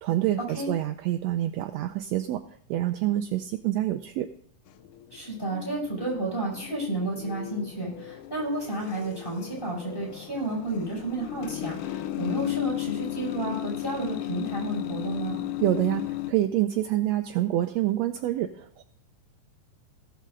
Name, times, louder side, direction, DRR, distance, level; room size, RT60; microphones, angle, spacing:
voice 1, 0.0-2.4 2.7-4.3 15.6-18.8, right 13 dB, 80° right, 7 dB, 1.5 m, -27 dB
sound 1, 4.7-16.3, left 15 dB, 85° left, 2.2 m, -35 dB
voice 2, 5.1-15.4, right 2 dB, 15° left, -3 dB, 6.1 m, -31 dB
18.0 x 6.7 x 3.8 m, 0.64 s
omnidirectional pair, 3.6 m